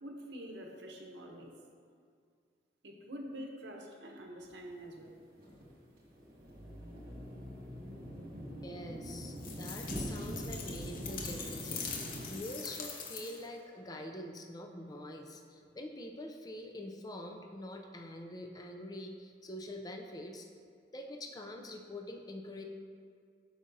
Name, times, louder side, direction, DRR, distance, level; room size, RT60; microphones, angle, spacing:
voice 1, 0.0-1.5 2.8-5.2, equal, 70° right, 1 dB, 0.8 m, -46 dB
sound 1, 4.4-12.4, equal, 55° right, 1.4 m, -43 dB
voice 2, 8.6-20.5 20.9-22.6, left 1 dB, 20° left, 3 dB, 0.4 m, -45 dB
sound 2, 9.4-13.6, left 5 dB, 50° left, 0.7 m, -43 dB
8.4 x 6.4 x 2.7 m, 2.2 s
head